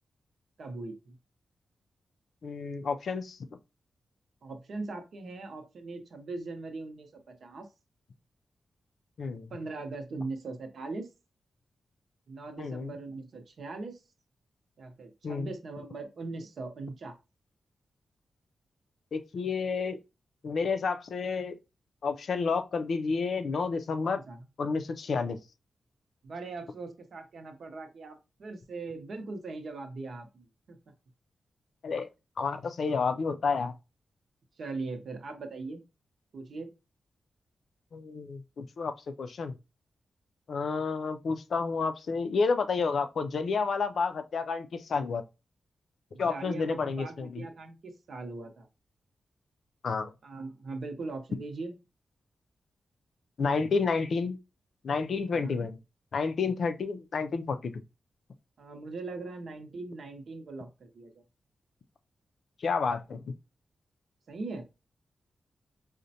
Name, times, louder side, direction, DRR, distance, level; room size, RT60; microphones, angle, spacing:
voice 1, 0.6-1.2 4.4-7.7 9.5-11.1 12.3-14.0 14.8-17.2 24.0-24.4 26.2-30.8 34.6-35.8 36.3-36.7 46.1-48.7 50.2-51.7 55.3-55.7 58.6-61.2 64.3-64.6, right 3 dB, 60° right, 0.7 m, -40 dB
voice 2, 2.4-3.4 9.2-9.5 12.6-12.9 15.2-15.5 19.1-20.0 20.4-21.6 22.0-24.2 24.6-25.4 31.8-32.1 32.4-33.7 37.9-38.9 39.2-39.5 40.5-45.2 46.2-47.4 49.8-50.1 53.4-54.4 54.8-55.8 56.1-57.7 62.6-63.3, left 4 dB, 60° left, 0.4 m, -30 dB
4.9 x 2.1 x 2.7 m
wide cardioid pair, 155°, 0 cm